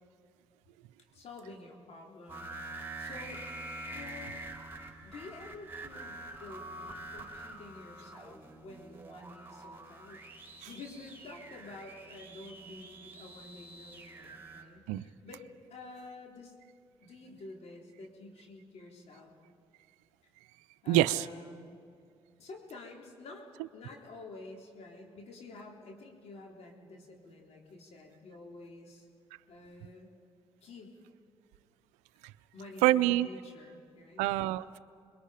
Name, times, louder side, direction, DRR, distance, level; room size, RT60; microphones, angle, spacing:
voice 1, 1.1-2.5 3.0-3.4 3.9-4.4 5.0-10.2 10.7-15.4 15.7-16.5 17.0-19.3 20.8-21.8 22.4-29.1 29.5-30.1 30.6-31.0 32.5-34.3, left 3 dB, 65° left, 0 dB, 3.7 m, -49 dB
sound 1, 2.3-14.6, right 2 dB, 20° right, 4.5 m, -46 dB
voice 2, 20.9-21.3 32.8-33.3 34.2-34.8, right 15 dB, 85° right, 16 dB, 0.5 m, -26 dB
27.0 x 22.0 x 5.1 m, 2.4 s
hypercardioid pair, 55°, 12 cm